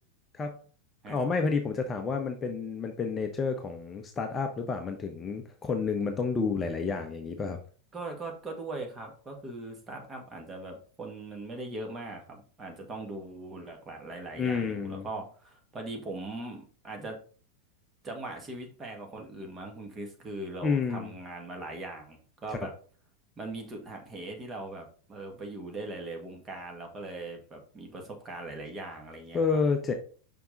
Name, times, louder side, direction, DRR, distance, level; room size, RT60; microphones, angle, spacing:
voice 1, 1.1-7.6 14.4-15.1 20.6-21.1 29.3-29.9, left 5 dB, 20° left, 5 dB, 0.8 m, -30 dB
voice 2, 7.9-17.2 18.0-22.7 23.4-29.6, right 2 dB, 20° right, 3 dB, 1.8 m, -40 dB
5.8 x 5.5 x 3.9 m, 0.40 s
figure-of-eight pair, 90°, 0 cm